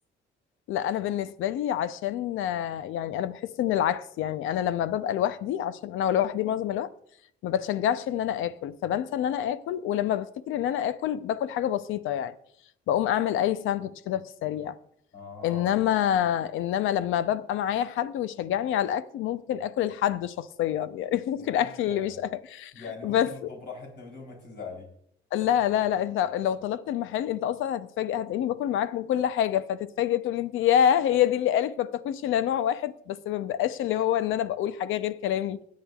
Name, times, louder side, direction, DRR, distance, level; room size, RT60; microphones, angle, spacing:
voice 1, 0.7-6.9 7.4-12.4 12.9-14.8 15.4-22.1 22.5-22.7 23.0-23.3 25.3-35.6, left 10 dB, 85° left, 0.6 m, -27 dB
voice 2, 15.1-15.7 21.4-22.2 22.7-24.9, left 4 dB, 60° left, 3.6 m, -42 dB
19.0 x 8.6 x 2.4 m
cardioid pair, 90°, 20 cm